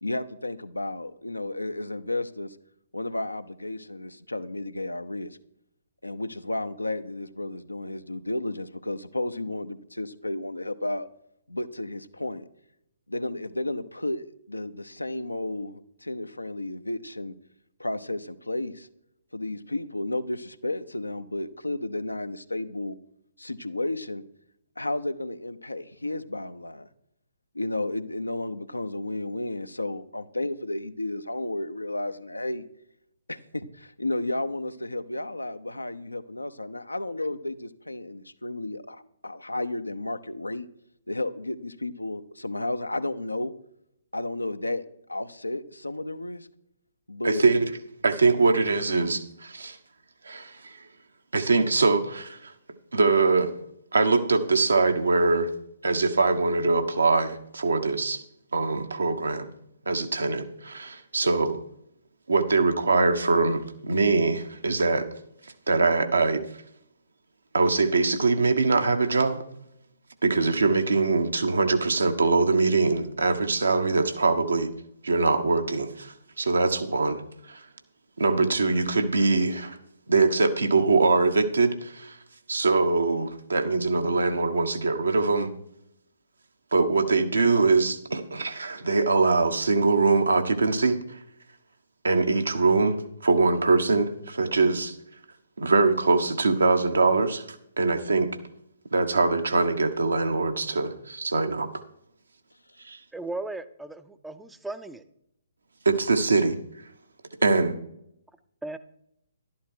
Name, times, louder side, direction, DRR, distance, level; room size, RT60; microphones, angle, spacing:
voice 1, 0.0-2.6 2.9-5.4 6.0-11.1 11.5-12.4 13.1-17.3 17.8-18.9 19.3-23.0 23.4-24.2 24.8-26.9 27.5-32.7 33.3-40.7 41.1-43.5 44.1-46.5 47.1-47.5, left 2 dB, 80° left, 0.8 m, -32 dB
voice 2, 47.2-47.7 48.0-49.8 50.2-50.8 51.3-52.5 52.9-53.5 53.9-55.5 55.8-58.2 58.5-59.5 59.9-61.6 62.3-65.1 65.7-66.4 67.5-69.4 70.2-74.7 75.0-77.2 77.5-77.6 78.2-79.8 80.1-82.2 82.5-85.5 86.7-91.2 92.0-95.0 95.6-97.4 97.8-98.3 98.9-101.7 102.9-103.0 105.8-106.6 107.4-107.8, right 3 dB, 70° right, 1.3 m, -23 dB
voice 3, 103.1-105.0 108.6-108.8, right 2 dB, 5° right, 0.6 m, -36 dB
12.0 x 11.5 x 4.5 m
figure-of-eight pair, 130°, 0 cm